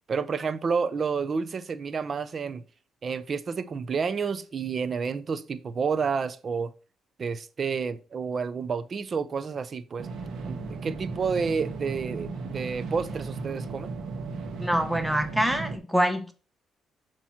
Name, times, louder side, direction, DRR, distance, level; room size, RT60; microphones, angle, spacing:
voice 1, 0.0-2.6 3.0-6.7 7.2-10.1 10.4-13.9, right 5 dB, 45° right, 0.6 m, -30 dB
sound 1, 10.0-15.8, right 4 dB, 70° right, 1.2 m, -35 dB
voice 2, 14.6-16.3, equal, 5° right, 0.9 m, -25 dB
7.1 x 3.0 x 5.7 m
cardioid pair, 90°, 0 cm